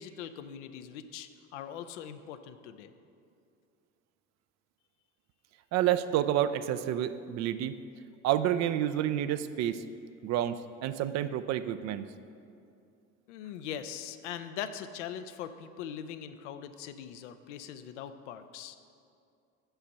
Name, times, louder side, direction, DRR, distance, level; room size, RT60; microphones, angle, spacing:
voice 1, 0.0-2.9 13.3-18.8, left 9 dB, 80° left, 10 dB, 0.5 m, -41 dB
voice 2, 5.7-7.8 8.2-9.8 10.2-12.0, right 11 dB, 50° right, 12 dB, 0.5 m, -29 dB
5.9 x 5.6 x 6.9 m, 2.4 s
hypercardioid pair, 65°, 35 cm